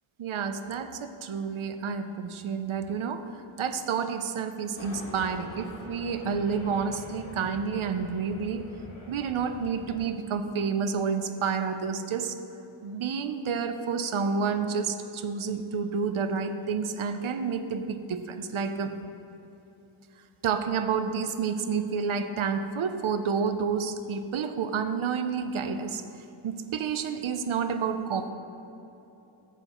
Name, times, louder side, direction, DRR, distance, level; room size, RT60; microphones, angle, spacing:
voice 1, 0.2-3.2 3.6-8.7 9.1-12.4 12.8-19.0 20.4-26.0 26.4-28.3, right 6 dB, 80° right, 9 dB, 0.6 m, -29 dB
sound 1, 4.7-10.1, left 1 dB, 80° left, 1.6 m, -45 dB
11.5 x 7.8 x 3.0 m, 3.0 s
wide cardioid pair, 55°, 48 cm